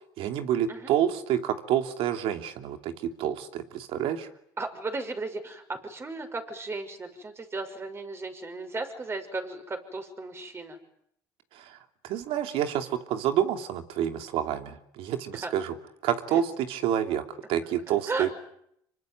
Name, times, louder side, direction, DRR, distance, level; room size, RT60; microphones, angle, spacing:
voice 1, 0.2-4.3 11.5-11.8 12.0-15.7 16.0-18.3, right 10 dB, 70° right, 7 dB, 2.9 m, -28 dB
voice 2, 4.6-10.8 15.3-15.5 16.3-16.4 18.1-18.3, right 3 dB, 25° right, 7 dB, 6.2 m, -35 dB
26.5 x 23.5 x 9.3 m, 0.73 s
supercardioid pair, 90°, 10 cm